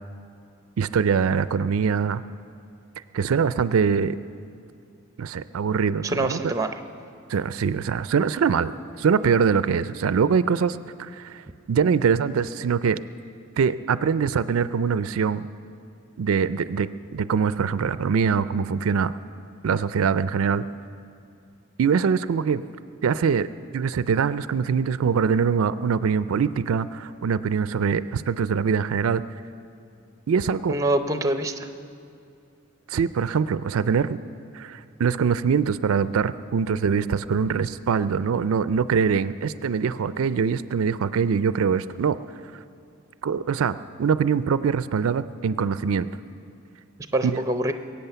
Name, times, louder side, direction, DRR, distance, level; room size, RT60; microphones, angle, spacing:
voice 1, 0.8-2.2 3.1-4.2 5.2-6.5 7.3-8.7 9.0-11.4 11.7-13.0 13.6-15.5 16.2-16.9 17.1-19.1 19.6-20.6 21.8-22.6 23.0-23.5 23.7-29.2 30.3-30.7 32.9-34.2 34.5-42.2 43.2-46.1 47.2-47.4, right 6 dB, 80° right, 15 dB, 0.4 m, -23 dB
voice 2, 6.0-6.8 30.7-31.7 47.1-47.7, right 1 dB, 15° right, 8 dB, 0.6 m, -25 dB
22.0 x 8.6 x 6.8 m, 2.4 s
head